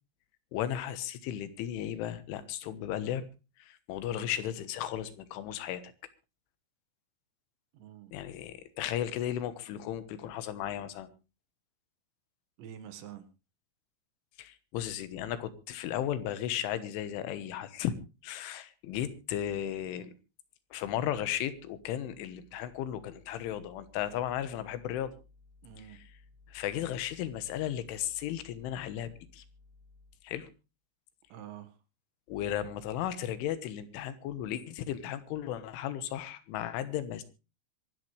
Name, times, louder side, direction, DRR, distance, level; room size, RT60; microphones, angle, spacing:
voice 1, 0.5-3.3 3.6-5.8 8.1-11.1 14.4-18.0 18.2-20.1 20.7-25.2 25.8-26.0 26.5-29.4 30.2-30.5 32.3-37.2, left 11 dB, 90° left, 12 dB, 3.7 m, -35 dB
voice 2, 4.0-4.3 7.7-8.1 12.6-13.3 25.6-26.0 31.3-31.7, right 10 dB, 75° right, 9 dB, 3.8 m, -47 dB
24.0 x 12.0 x 3.2 m, 0.31 s
omnidirectional pair, 5.4 m